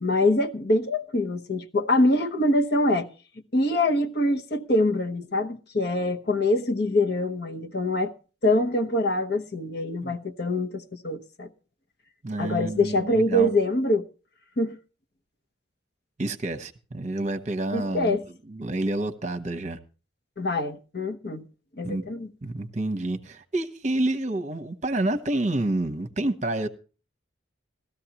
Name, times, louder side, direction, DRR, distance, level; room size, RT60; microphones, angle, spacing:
voice 1, 0.0-3.1 3.5-8.1 8.4-11.5 12.4-14.0 14.6-14.8 17.7-18.2 20.4-21.4 21.8-22.3, left 1 dB, 55° left, 1.0 m, -24 dB
voice 2, 12.2-13.5 16.2-18.2 18.5-19.8 21.8-22.0 22.4-26.7, right 2 dB, 35° right, 0.9 m, -28 dB
17.5 x 13.5 x 2.9 m
head